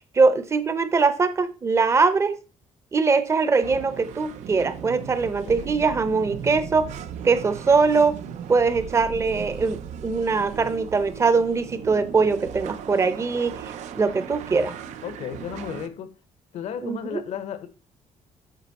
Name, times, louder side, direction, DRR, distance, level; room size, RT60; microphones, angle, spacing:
voice 1, 0.1-2.3 2.9-6.9 7.2-8.2 8.5-13.5 13.9-14.7 16.8-17.2, right 4 dB, 25° right, 0.6 m, -22 dB
sound 1, 3.6-15.9, right 8 dB, 85° right, 0.6 m, -37 dB
voice 2, 5.2-5.8 15.0-16.1 16.5-17.7, left 8 dB, 75° left, 1.0 m, -34 dB
8.3 x 5.2 x 4.1 m
cardioid pair, 160°, 12 cm